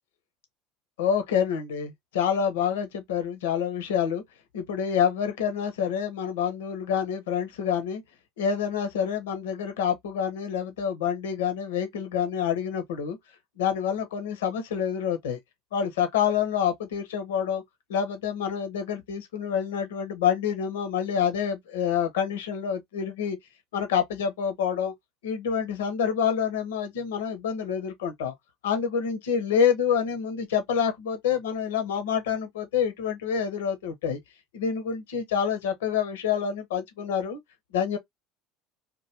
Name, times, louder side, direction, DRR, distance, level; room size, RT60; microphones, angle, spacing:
voice 1, 1.0-4.2 4.5-8.0 8.4-13.2 13.6-15.4 15.7-17.6 17.9-23.4 23.7-24.9 25.2-28.3 28.6-34.2 34.5-37.4 37.7-38.0, left 8 dB, 80° left, 0.7 m, -27 dB
3.0 x 2.2 x 3.2 m
hypercardioid pair, 80°, 0 cm